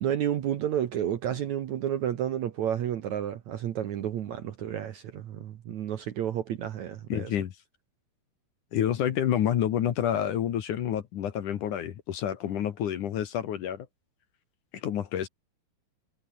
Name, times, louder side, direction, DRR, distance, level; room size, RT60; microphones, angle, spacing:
voice 1, 0.0-7.3, right 10 dB, 65° right, 2.1 m, -31 dB
voice 2, 7.1-7.5 8.7-13.9 14.7-15.3, left 10 dB, 60° left, 2.6 m, -28 dB
omnidirectional pair, 4.6 m